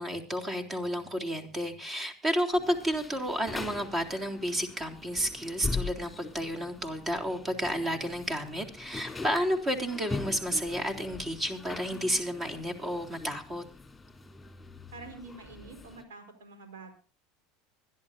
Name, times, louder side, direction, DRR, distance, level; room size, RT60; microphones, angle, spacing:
voice 1, 0.0-13.6, equal, 30° right, 5 dB, 3.6 m, -31 dB
sound 1, 2.5-16.0, left 3 dB, 10° left, 3.5 m, -42 dB
voice 2, 14.9-16.9, right 3 dB, 80° right, 6 dB, 4.8 m, -47 dB
25.0 x 11.0 x 2.7 m, 0.37 s
hypercardioid pair, 90°, 0 cm